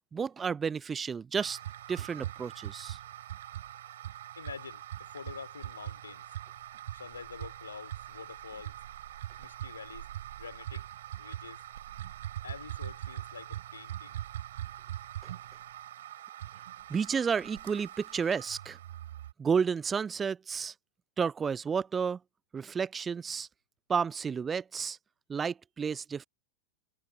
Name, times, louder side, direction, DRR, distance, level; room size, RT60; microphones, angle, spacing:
voice 1, 0.1-1.6 1.9-3.0 16.9-18.8 19.4-20.7 21.2-22.2 22.5-23.5 23.9-25.0 25.3-26.3, right 6 dB, 20° right, 0.6 m, -31 dB
sound 1, 1.4-19.3, right 12 dB, 60° right, 5.6 m, -42 dB
voice 2, 4.4-6.3 6.9-8.8 9.4-10.1 10.4-10.9 11.2-11.6 12.4-14.2, left 6 dB, 75° left, 5.2 m, -46 dB
figure-of-eight pair, 90°, 0 cm